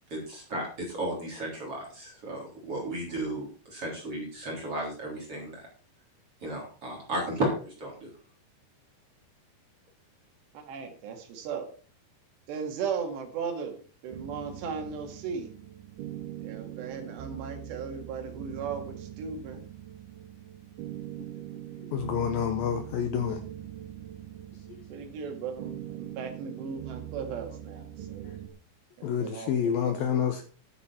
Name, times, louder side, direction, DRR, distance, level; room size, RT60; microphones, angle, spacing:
voice 1, 0.1-5.7 6.4-8.1, right 1 dB, 35° right, 4.2 m, -34 dB
voice 2, 10.5-11.7 12.5-15.5 16.4-19.6 24.7-28.3 29.0-29.7, right 6 dB, 70° right, 4.1 m, -37 dB
sound 1, 14.1-28.5, right 12 dB, 90° right, 4.5 m, -42 dB
voice 3, 21.8-23.4 24.8-25.0 28.2-28.4 29.0-30.4, left 8 dB, 75° left, 2.2 m, -29 dB
11.5 x 9.8 x 4.4 m
omnidirectional pair, 5.2 m